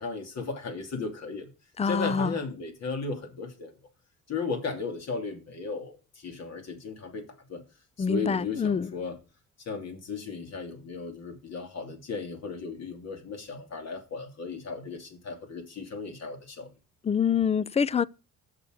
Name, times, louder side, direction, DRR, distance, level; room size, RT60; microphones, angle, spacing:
voice 1, 0.0-1.5 1.8-3.7 4.3-7.6 8.0-9.2 9.6-16.7, left 4 dB, 60° left, 2.9 m, -35 dB
voice 2, 1.8-2.3 8.0-8.9 17.1-18.0, left 6 dB, 20° left, 0.4 m, -25 dB
7.1 x 6.6 x 6.5 m
cardioid pair, 90°, 30 cm